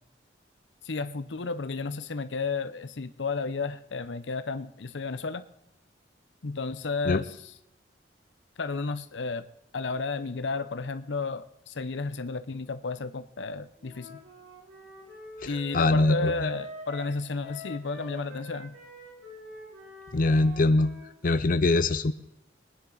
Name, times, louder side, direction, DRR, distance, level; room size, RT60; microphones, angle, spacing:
voice 1, 0.8-5.4 6.4-7.5 8.6-9.4 9.7-14.2 15.5-18.8, left 4 dB, 90° left, 11 dB, 0.8 m, -32 dB
Wind instrument woodwind instrument, 13.8-21.1, equal, 80° right, 4.6 m, -44 dB
voice 2, 15.7-16.5 20.1-20.9 21.2-22.1, left 2 dB, 50° left, 11 dB, 0.6 m, -22 dB
22.0 x 10.0 x 4.0 m, 0.80 s
head